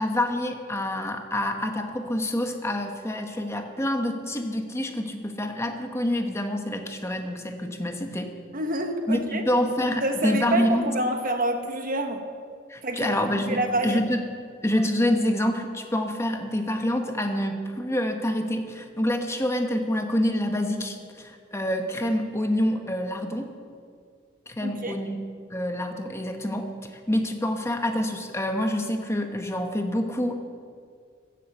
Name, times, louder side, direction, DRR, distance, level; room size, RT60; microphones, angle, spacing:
voice 1, 0.0-8.3 9.1-10.9 12.7-14.4 14.6-23.5 24.5-25.2 25.5-26.7 27.1-30.4, left 1 dB, 15° left, 5 dB, 1.0 m, -27 dB
voice 2, 8.5-9.4 10.0-12.3 12.8-14.0 24.6-25.0, right 1 dB, 45° right, 5 dB, 1.2 m, -27 dB
16.5 x 7.8 x 7.9 m, 2.2 s
head